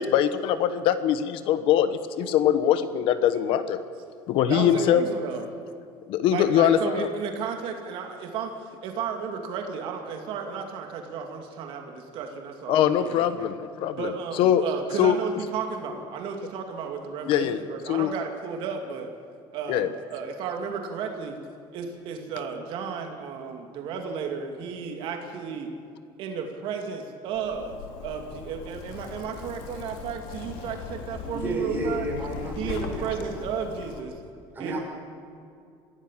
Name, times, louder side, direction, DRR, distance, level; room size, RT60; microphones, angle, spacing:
voice 1, 0.0-3.8 4.3-5.0 6.1-7.1 12.7-14.1 14.4-14.6 15.0-15.2 17.3-17.6 17.9-18.1 19.7-19.9, left 10 dB, 60° left, 12 dB, 1.2 m, -22 dB
voice 2, 4.5-5.4 6.3-13.2 14.0-19.1 19.5-21.4 21.7-25.7 26.2-32.1 32.6-34.2 34.6-34.8, right 6 dB, 60° right, 3 dB, 2.5 m, -33 dB
Zipper (clothing), 27.3-34.0, left 6 dB, 85° left, 2.9 m, -39 dB
voice 3, 31.3-33.4 34.5-34.8, right 2 dB, 20° right, -1 dB, 6.2 m, -31 dB
23.5 x 16.0 x 7.5 m, 2.5 s
cardioid pair, 135°, 10 cm